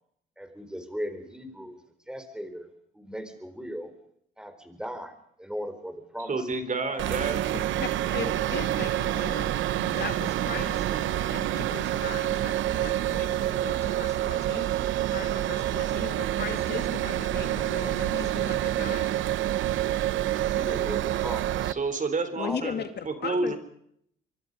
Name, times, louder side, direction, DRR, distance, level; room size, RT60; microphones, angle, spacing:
voice 1, 0.4-1.8 2.1-2.7 2.9-3.9 4.4-6.6 6.9-7.0 20.4-21.8 22.4-22.9, equal, 5° right, 8 dB, 4.5 m, -38 dB
voice 2, 6.3-7.5 21.7-23.6, right 3 dB, 40° right, 9 dB, 3.9 m, -30 dB
sound 1, 7.0-21.7, right 12 dB, 75° right, 0.8 m, -27 dB
voice 3, 7.8-19.2 22.4-23.6, left 7 dB, 55° left, 8 dB, 2.3 m, -38 dB
24.5 x 23.5 x 5.4 m, 0.69 s
cardioid pair, 90°, 20 cm